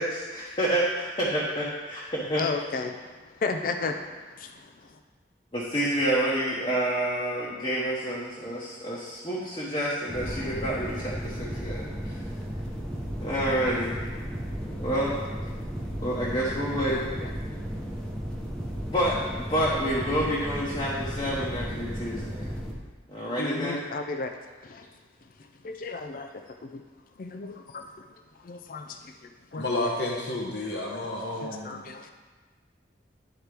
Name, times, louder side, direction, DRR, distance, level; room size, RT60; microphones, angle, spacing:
voice 1, 0.0-2.5 3.5-3.9 5.5-12.2 13.2-14.0 14.6-15.2 16.0-17.0 18.9-22.5 23.1-23.8, right 1 dB, 30° left, -7 dB, 1.0 m, -28 dB
voice 2, 2.3-3.0 3.4-4.0 4.4-4.5 16.9-17.3 23.4-24.3 24.6-24.9 25.6-26.8 27.2-27.8 28.4-29.0 29.5-29.6 31.4-32.1, left 4 dB, 45° left, 6 dB, 0.4 m, -33 dB
sound 1, 10.1-22.7, equal, 5° left, 0.9 m, -34 dB
voice 3, 29.5-31.8, left 2 dB, 60° left, -2 dB, 0.9 m, -31 dB
11.0 x 4.4 x 3.4 m, 1.3 s
head